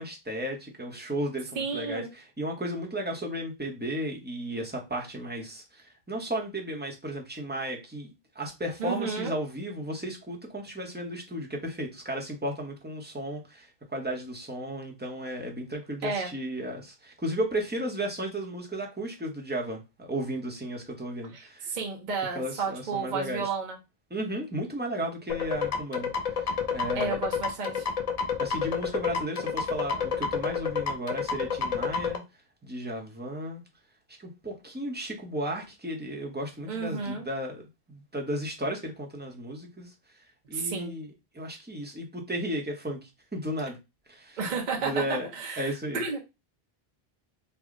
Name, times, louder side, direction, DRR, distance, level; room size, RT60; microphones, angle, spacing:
voice 1, 0.0-8.1 8.3-21.7 22.3-23.5 24.1-27.2 28.4-32.2 32.6-33.6 34.2-37.6 37.9-39.9 40.5-43.8 44.1-44.4 44.8-45.3 45.6-46.0, right 1 dB, 10° right, 0 dB, 0.7 m, -34 dB
voice 2, 1.6-2.1 8.8-9.3 16.0-16.3 21.3-23.8 26.9-27.9 36.7-37.2 40.5-40.9 44.4-46.2, right 4 dB, 50° right, 0 dB, 0.8 m, -32 dB
sound 1, 25.3-32.2, left 6 dB, 50° left, 0.5 m, -29 dB
3.4 x 2.1 x 3.6 m, 0.25 s
omnidirectional pair, 1.0 m